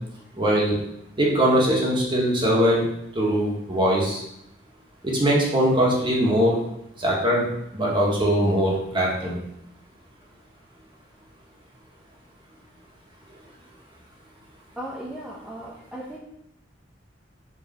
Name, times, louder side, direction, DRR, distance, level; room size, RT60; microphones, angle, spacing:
voice 1, 0.3-0.8 1.2-2.9 3.1-4.2 5.0-6.6 7.0-7.5 7.7-9.3, equal, 25° right, -3 dB, 1.9 m, -21 dB
voice 2, 14.7-16.2, right 1 dB, 5° right, -5 dB, 0.9 m, -36 dB
5.3 x 4.6 x 5.8 m, 0.79 s
head